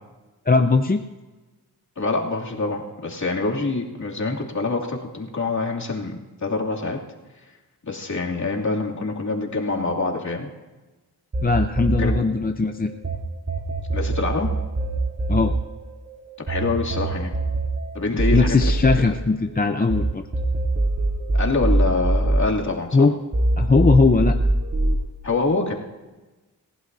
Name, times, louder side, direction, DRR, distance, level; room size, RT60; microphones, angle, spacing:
voice 1, 0.5-1.0 11.4-12.9 15.3-15.5 18.3-20.2 22.9-23.1 23.6-24.4, left 4 dB, 25° left, 6 dB, 0.6 m, -19 dB
voice 2, 2.0-7.0 7.9-10.5 12.0-12.1 13.9-14.5 16.5-17.3 17.9-18.5 21.3-23.1 25.2-25.7, left 3 dB, 45° left, -2 dB, 2.7 m, -25 dB
sound 1, 11.3-13.2 13.5-20.0 20.3-23.0 23.3-25.0, right 2 dB, 45° right, 3.3 m, -23 dB
29.0 x 16.0 x 2.7 m, 1.2 s
wide cardioid pair, 95°, 39 cm